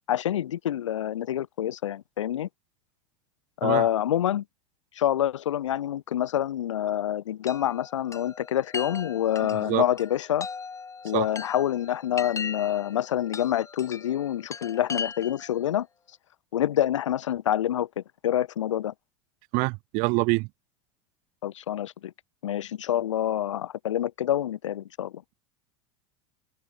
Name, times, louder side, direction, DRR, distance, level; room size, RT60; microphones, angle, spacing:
voice 1, 0.1-2.5 3.6-4.4 5.0-10.5 11.0-15.9 16.5-18.9 21.4-22.1 22.4-25.2, left 11 dB, 80° left, 3.8 m, -27 dB
Chime, 7.5-15.6, left 5 dB, 20° left, 2.7 m, -39 dB
voice 2, 9.4-9.8 11.1-11.3 19.5-20.5, right 28 dB, 55° right, 0.9 m, -26 dB
open air
hypercardioid pair, 85°, 16 cm